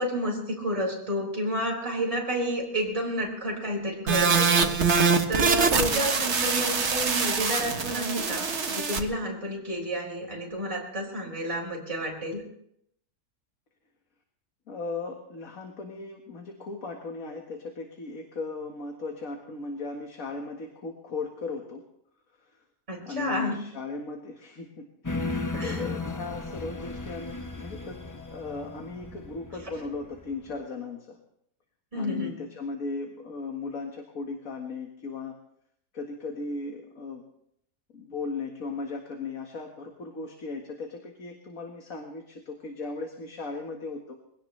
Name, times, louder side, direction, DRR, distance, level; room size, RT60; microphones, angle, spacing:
voice 1, 0.0-4.8 5.3-12.4 22.9-23.6 25.4-25.8 31.9-32.4, equal, 20° right, -1 dB, 4.0 m, -30 dB
sound 1, 4.1-9.0, right 5 dB, 45° right, 1.4 m, -24 dB
voice 2, 5.8-6.2 14.7-21.8 23.0-31.2 31.9-35.4 35.9-37.2 37.9-44.1, left 4 dB, 55° left, 2 dB, 2.0 m, -37 dB
sound 2, 25.0-30.5, left 3 dB, 25° left, 0.3 m, -35 dB
22.5 x 17.0 x 3.3 m, 0.74 s
omnidirectional pair, 1.7 m